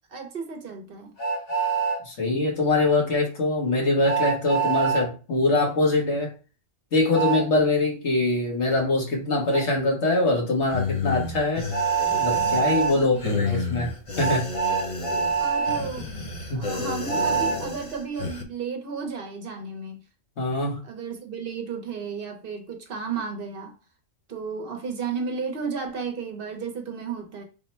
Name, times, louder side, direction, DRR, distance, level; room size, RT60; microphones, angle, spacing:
voice 1, 0.1-1.1 12.9-13.6 15.4-16.2 16.5-20.0 20.8-23.7 24.3-27.5, right 5 dB, 60° right, 0.9 m, -33 dB
Train, 1.2-2.0 4.0-5.1 7.1-7.5 9.5-9.7 11.7-12.9 14.2-15.8 17.1-17.6, right 6 dB, 60° left, 1.1 m, -25 dB
voice 2, 2.0-6.3 6.9-11.7 12.2-13.9 14.2-14.5 16.5-16.7 20.4-20.8, left 2 dB, 85° left, 1.5 m, -23 dB
sound 1, 10.7-18.4, left 4 dB, 40° left, 0.5 m, -31 dB
3.6 x 2.1 x 4.2 m
omnidirectional pair, 1.1 m